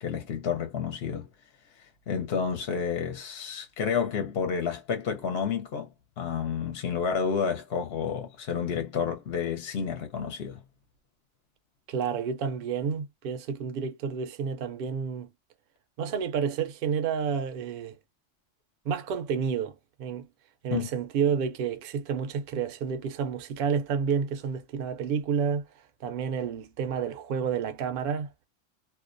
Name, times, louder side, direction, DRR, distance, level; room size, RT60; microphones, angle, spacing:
voice 1, 0.0-1.3 2.1-5.9 6.2-10.6 20.7-20.9, left 6 dB, 60° left, 0.8 m, -30 dB
voice 2, 11.9-15.3 16.0-17.9 18.9-20.3 20.6-25.6 26.0-28.3, right 7 dB, 60° right, 0.6 m, -30 dB
2.4 x 2.1 x 2.5 m
omnidirectional pair, 1.2 m